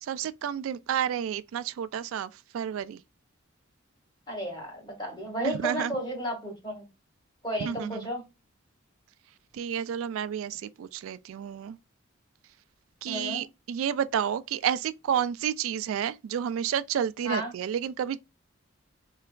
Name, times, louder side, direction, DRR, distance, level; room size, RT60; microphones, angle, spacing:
voice 1, 0.0-3.0 5.4-5.9 7.6-8.1 9.5-11.8 13.0-18.2, right 9 dB, 80° right, 0.3 m, -30 dB
voice 2, 4.3-6.8 7.4-8.2 13.1-13.4 17.3-17.5, right 1 dB, 20° left, 1.7 m, -33 dB
3.8 x 3.3 x 2.3 m
head